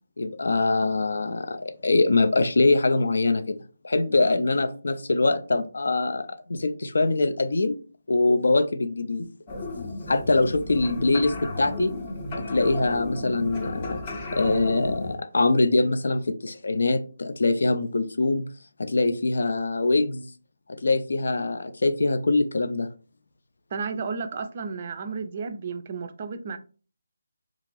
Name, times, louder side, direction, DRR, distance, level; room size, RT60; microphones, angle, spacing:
voice 1, 0.2-3.6 3.8-7.8 8.1-9.3 10.1-11.9 12.3-14.0 14.3-18.4 18.8-20.3 20.8-22.9, left 3 dB, 65° left, 0.4 m, -23 dB
sound 1, 9.5-15.2, left 2 dB, 25° left, 0.7 m, -34 dB
voice 2, 23.7-26.6, right 5 dB, 35° right, 0.4 m, -32 dB
2.5 x 2.5 x 3.2 m
figure-of-eight pair, 160°, 0 cm